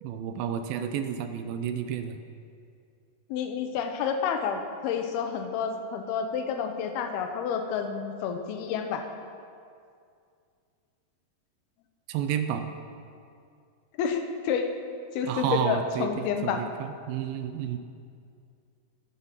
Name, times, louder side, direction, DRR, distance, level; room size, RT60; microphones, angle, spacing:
voice 1, 0.0-2.2 12.1-12.7 15.2-17.8, right 9 dB, 80° right, 8 dB, 2.3 m, -31 dB
voice 2, 3.3-9.0 14.0-14.7 15.1-16.6, left 7 dB, 85° left, 6 dB, 2.8 m, -29 dB
12.5 x 9.7 x 5.8 m, 2.4 s
omnidirectional pair, 4.3 m